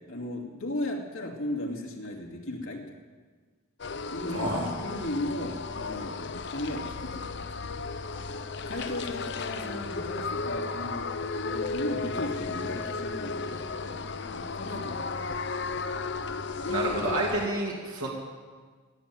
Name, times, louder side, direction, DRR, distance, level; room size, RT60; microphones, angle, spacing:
voice 1, 0.1-2.8 4.1-7.8 8.6-11.1 11.4-15.1 17.4-17.5, left 1 dB, 80° left, 0 dB, 2.6 m, -36 dB
sound 1, 3.8-17.5, left 4 dB, 55° left, 0.6 m, -34 dB
voice 2, 4.3-4.7 16.7-18.1, right 1 dB, 85° right, -4 dB, 2.6 m, -29 dB
17.5 x 10.5 x 7.8 m, 1.5 s
head